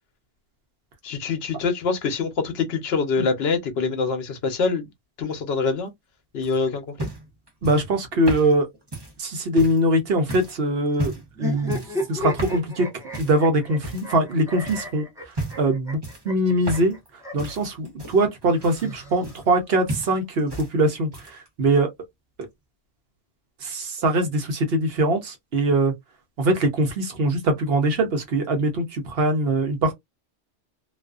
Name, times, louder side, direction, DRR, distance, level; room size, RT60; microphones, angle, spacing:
voice 1, 1.0-4.9 5.2-5.9 6.3-7.1, left 4 dB, 70° left, 0.9 m, -25 dB
sound 1, 6.4-9.8 10.3-10.6 10.9-11.3 11.7-12.0 12.4-12.7 13.1-13.4 13.8-14.3 14.7-14.9 15.3-15.7 16.0-17.1 17.4-19.6 19.9-20.7 21.0-21.5 22.4-22.5, right 1 dB, 25° right, 0.9 m, -34 dB
voice 2, 7.6-8.7 9.2-11.1 11.4-11.8 12.1-12.9 13.2-15.0 15.6-16.0 16.2-17.0 17.3-21.9 23.6-25.9 26.4-29.9, right 1 dB, 65° right, 0.9 m, -22 dB
sound 2, 11.3-17.5 18.5-19.6, left 2 dB, 5° right, 0.7 m, -34 dB
2.4 x 2.3 x 2.3 m
omnidirectional pair, 1.1 m